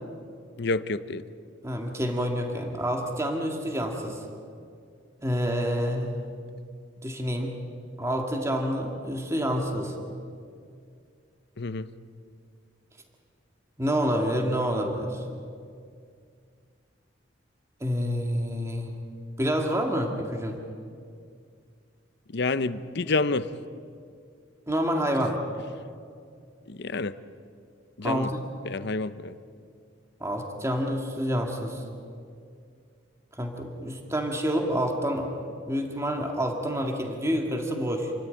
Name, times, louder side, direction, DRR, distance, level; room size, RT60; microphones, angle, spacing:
voice 1, 0.6-1.2 11.6-11.9 22.3-23.5 26.7-27.2 28.0-28.3 28.6-29.3, left 3 dB, 60° left, 13 dB, 0.8 m, -28 dB
voice 2, 1.6-4.2 5.2-6.2 7.0-7.5 8.0-10.0 13.8-15.2 17.8-18.9 19.4-20.6 24.7-25.4 28.0-28.3 30.2-31.8 33.4-38.1, equal, 15° right, 2 dB, 2.1 m, -28 dB
28.5 x 13.0 x 9.2 m, 2.3 s
head